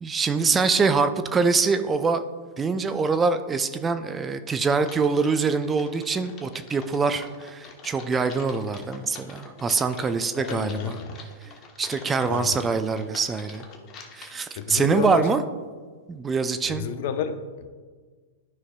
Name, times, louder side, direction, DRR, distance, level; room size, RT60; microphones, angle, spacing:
voice 1, 0.0-2.2 2.6-11.0 11.8-13.6 14.1-15.4 16.1-16.8, right 4 dB, 20° right, 10 dB, 0.4 m, -24 dB
Typing, 4.8-15.3, left 4 dB, 35° left, 1.1 m, -46 dB
voice 2, 10.4-11.2 12.3-12.7 14.5-15.3 16.7-17.7, left 6 dB, 55° left, 10 dB, 0.6 m, -30 dB
12.5 x 5.5 x 2.3 m, 1.5 s
hypercardioid pair, 105°, 0 cm